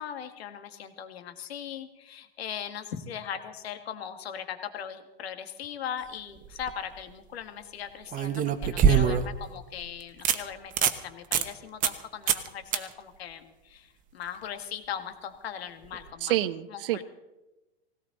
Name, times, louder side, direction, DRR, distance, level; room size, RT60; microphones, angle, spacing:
voice 1, 0.0-16.4 16.7-17.0, left 8 dB, 80° left, 8 dB, 1.9 m, -39 dB
sound 1, 6.4-6.7 8.1-9.4 9.8-9.9 10.2-10.4 10.7-11.0 11.3-11.5 11.8-12.0 12.3-12.5 12.7-12.8 15.9-16.0, right 8 dB, 25° right, 1.1 m, -23 dB
voice 2, 16.2-17.0, right 14 dB, 65° right, 15 dB, 0.9 m, -28 dB
19.0 x 17.0 x 4.0 m, 1.0 s
supercardioid pair, 135°, 31 cm